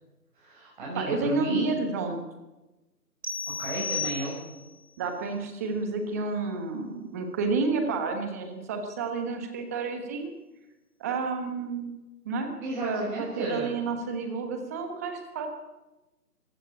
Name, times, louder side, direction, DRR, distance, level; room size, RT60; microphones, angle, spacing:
voice 1, 0.4-1.8 3.6-4.4 12.6-13.7, right 2 dB, 30° right, -5 dB, 7.0 m, -33 dB
voice 2, 1.0-2.2 5.0-10.3 11.0-12.0 12.2-12.5 12.8-15.5, right 4 dB, 10° right, 5 dB, 1.2 m, -30 dB
sound 1, 3.2-4.8, left 5 dB, 60° right, 4.5 m, -33 dB
23.0 x 15.0 x 8.8 m, 1.1 s
figure-of-eight pair, 155°, 48 cm